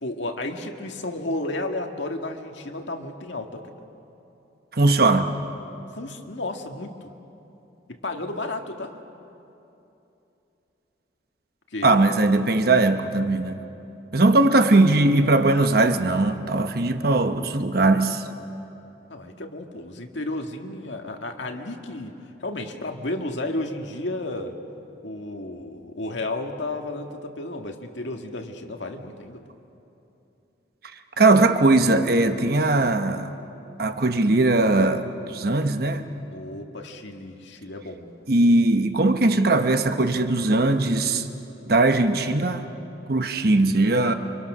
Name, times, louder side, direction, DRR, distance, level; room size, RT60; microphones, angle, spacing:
voice 1, 0.0-3.6 5.9-6.9 8.0-8.9 11.7-12.0 19.1-22.1 22.4-24.5 25.0-29.4 36.3-38.1, left 2 dB, 75° left, 1.8 m, -32 dB
voice 2, 4.7-5.3 11.8-13.6 14.1-18.2 31.2-33.3 33.8-36.0 38.3-41.2 41.7-42.7 43.1-44.1, right 2 dB, 50° right, 1.1 m, -19 dB
29.5 x 25.5 x 6.2 m
head